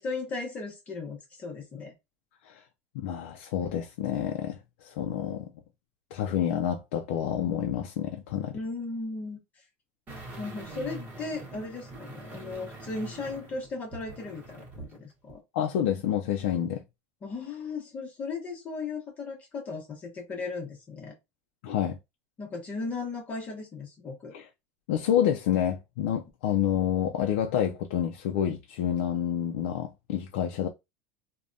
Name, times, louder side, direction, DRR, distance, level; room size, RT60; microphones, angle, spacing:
voice 1, 0.0-1.9 8.5-9.4 10.4-15.4 17.2-21.1 22.4-24.3, left 3 dB, 25° left, 0.8 m, -36 dB
voice 2, 2.9-5.5 6.1-8.6 15.5-16.8 21.6-22.0 24.3-24.5 24.9-30.7, left 10 dB, 80° left, 0.4 m, -28 dB
sound 1, 10.1-15.0 15.3-15.4, right 2 dB, 25° right, 1.0 m, -44 dB
3.3 x 2.1 x 2.6 m
supercardioid pair, 160°, 6 cm